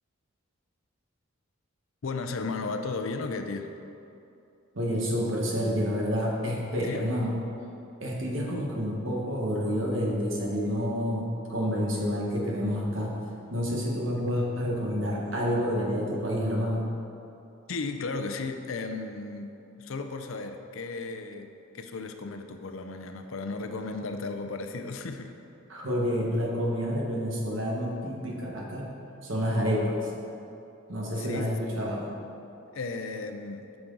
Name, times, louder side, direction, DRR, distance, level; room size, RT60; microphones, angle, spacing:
voice 1, 2.0-3.7 6.8-7.1 17.7-19.5 19.8-25.4 31.2-31.5 32.7-33.6, left 3 dB, 70° left, 6 dB, 0.5 m, -35 dB
voice 2, 4.7-7.3 8.0-13.1 13.5-16.9 25.7-28.9 29.2-30.1 30.9-32.1, equal, 65° right, -2 dB, 1.3 m, -29 dB
8.6 x 6.1 x 3.9 m, 2.8 s
head